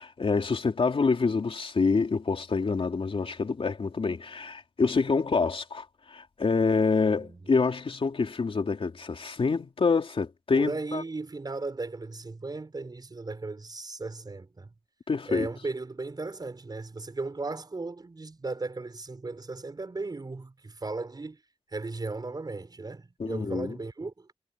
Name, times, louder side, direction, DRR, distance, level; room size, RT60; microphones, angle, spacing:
voice 1, 0.0-11.0 15.1-15.5 23.2-23.8, left 4 dB, 70° left, 3.9 m, -27 dB
voice 2, 7.0-7.4 10.5-14.7 15.3-21.4 21.7-24.3, right 3 dB, 45° right, 5.3 m, -36 dB
wide cardioid pair, 100°, 10 cm